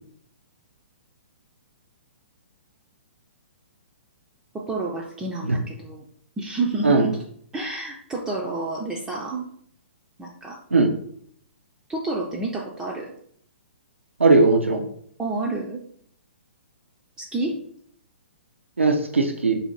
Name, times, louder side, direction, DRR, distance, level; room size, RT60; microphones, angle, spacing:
voice 1, 4.5-6.0 6.4-7.2 7.5-9.5 10.2-10.6 11.9-13.1 15.2-15.8 17.2-17.6, right 2 dB, 10° right, -2 dB, 0.4 m, -29 dB
voice 2, 14.2-14.8 18.8-19.6, right 3 dB, 85° right, 3 dB, 0.5 m, -18 dB
2.8 x 2.6 x 3.8 m, 0.65 s
figure-of-eight pair, 120°, 7 cm